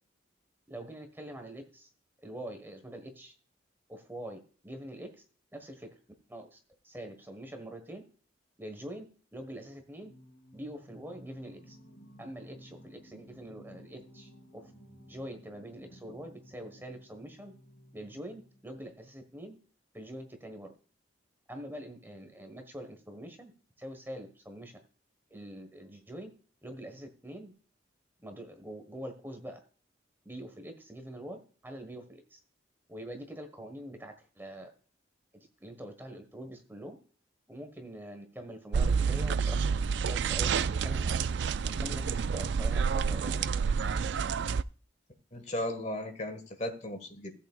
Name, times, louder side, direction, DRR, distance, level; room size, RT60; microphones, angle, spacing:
voice 1, 0.7-1.9 2.2-3.3 3.9-5.2 5.5-5.9 6.3-6.6 6.8-8.0 8.6-9.0 9.3-10.1 10.5-11.8 12.2-14.6 15.1-17.5 17.9-19.6 19.9-20.7 21.5-23.5 23.8-24.7 25.3-26.3 26.6-27.5 28.2-29.6 30.2-31.4 31.6-32.4 32.9-34.7 35.6-37.0 37.5-39.6 40.0-41.2 41.8-43.5, right 1 dB, 10° right, 6 dB, 1.4 m, -44 dB
Singing, 10.0-18.9, equal, 85° left, 3.7 m, -55 dB
sound 1, 38.7-44.6, right 6 dB, 65° right, 0.3 m, -29 dB
voice 2, 45.3-47.3, left 1 dB, 35° left, 6 dB, 1.7 m, -36 dB
14.5 x 8.3 x 2.4 m, 0.39 s
head